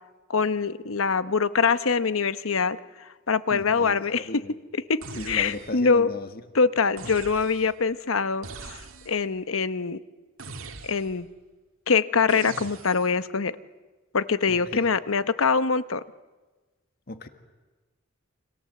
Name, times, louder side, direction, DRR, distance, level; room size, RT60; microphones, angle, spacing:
voice 1, 0.3-2.8 3.3-4.3 4.9-5.0 5.3-6.1 6.5-8.5 9.1-10.0 10.8-11.3 11.9-13.6 14.1-16.0, left 5 dB, 75° left, 13 dB, 0.9 m, -23 dB
voice 2, 3.5-4.5 5.1-6.4 7.0-7.1 14.5-15.0 17.1-17.3, left 2 dB, 50° left, 8 dB, 1.7 m, -36 dB
sound 1, 5.0-5.9 7.0-7.8 8.4-9.3 10.4-11.3 12.3-13.2, right 4 dB, 80° right, 1.9 m, -42 dB
29.5 x 26.0 x 7.7 m, 1.3 s
head